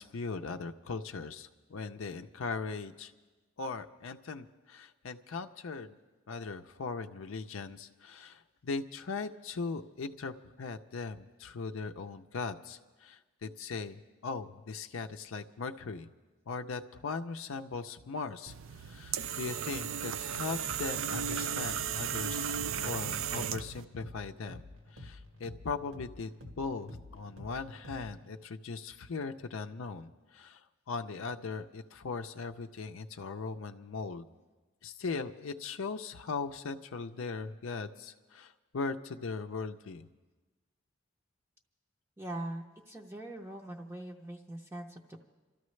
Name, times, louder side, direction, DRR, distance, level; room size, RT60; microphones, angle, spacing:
voice 1, 0.0-3.1 3.6-6.0 6.3-16.1 16.5-24.6 24.9-34.3 34.8-40.1, left 4 dB, 70° left, 7 dB, 0.5 m, -39 dB
sound 1, 18.5-23.8, right 8 dB, 70° right, 0.4 m, -35 dB
sound 2, 20.6-28.3, left 1 dB, 85° right, 1.8 m, -50 dB
voice 2, 42.2-45.2, right 1 dB, 10° right, 0 dB, 0.6 m, -42 dB
28.0 x 13.5 x 3.2 m, 1.3 s
head